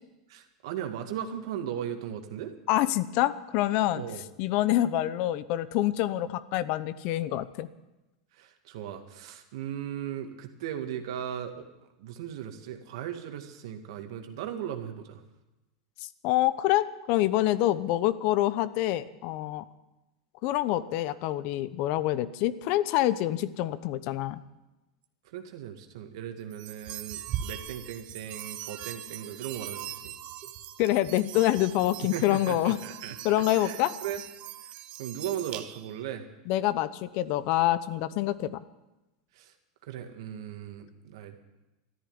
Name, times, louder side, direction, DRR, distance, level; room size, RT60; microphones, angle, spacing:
voice 1, 0.3-2.5 3.9-4.2 8.3-11.6 12.0-15.2 25.2-30.1 32.0-34.2 34.6-34.7 35.0-36.3 39.3-39.5 39.8-41.4, right 10 dB, 75° right, 6 dB, 2.1 m, -37 dB
voice 2, 2.7-4.0 4.4-7.7 16.2-19.6 20.4-24.4 30.8-32.8 33.2-33.9 36.5-38.6, left 14 dB, 55° left, 15 dB, 0.8 m, -26 dB
sound 1, 26.5-36.0, right 11 dB, 45° right, 1.1 m, -40 dB
13.5 x 10.5 x 9.6 m, 1.0 s
hypercardioid pair, 115°, 3 cm